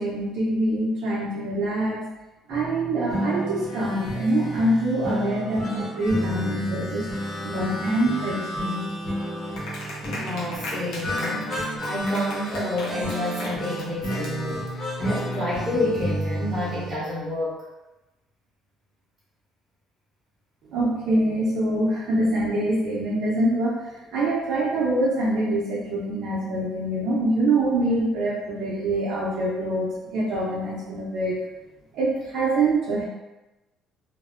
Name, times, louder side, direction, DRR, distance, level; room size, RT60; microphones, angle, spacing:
voice 1, 0.0-2.0 2.5-7.1 7.4-8.8 20.7-31.4 31.9-33.0, right 1 dB, 65° right, -7 dB, 0.5 m, -25 dB
sound 1, 2.5-16.9, equal, 30° left, 0.6 m, -31 dB
Clapping, 9.6-14.9, left 1 dB, 75° left, 0.6 m, -37 dB
voice 2, 10.0-17.6, left 1 dB, 10° right, -11 dB, 0.9 m, -29 dB
2.6 x 2.0 x 2.4 m, 1.0 s
cardioid pair, 165°, 0 cm